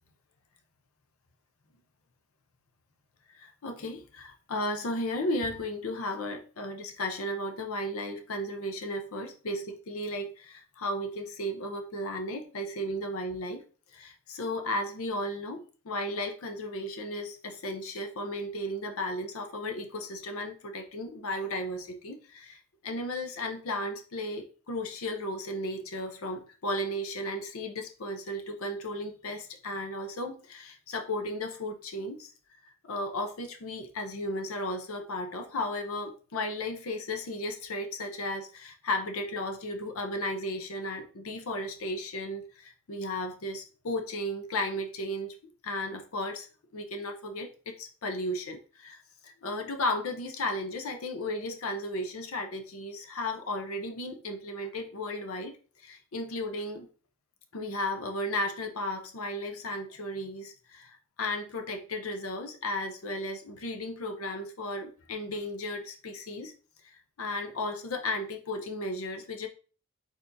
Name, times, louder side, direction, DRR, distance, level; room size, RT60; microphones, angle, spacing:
voice 1, 3.3-13.6 13.9-32.3 32.8-45.4 45.6-46.5 46.7-56.9 57.5-66.5 66.8-69.5, left 1 dB, 75° left, 4 dB, 0.6 m, -35 dB
4.5 x 4.3 x 2.6 m, 0.38 s
head